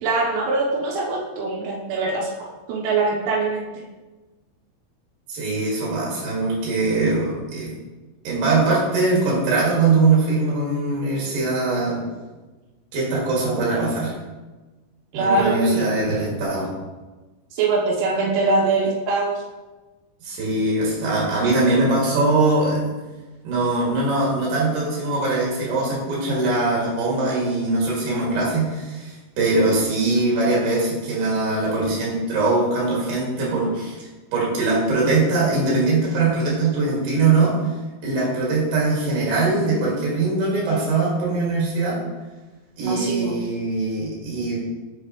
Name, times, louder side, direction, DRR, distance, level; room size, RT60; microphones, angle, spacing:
voice 1, 0.0-3.6 15.1-15.9 17.5-19.4 42.8-43.3, right 3 dB, 85° right, -3 dB, 3.3 m, -23 dB
voice 2, 5.3-7.8 8.2-12.0 12.9-14.2 15.1-16.7 20.2-22.8 23.4-37.7 38.0-42.0 42.8-44.6, right 3 dB, 55° right, -5 dB, 2.9 m, -21 dB
6.5 x 5.0 x 3.0 m, 1.2 s
omnidirectional pair, 5.6 m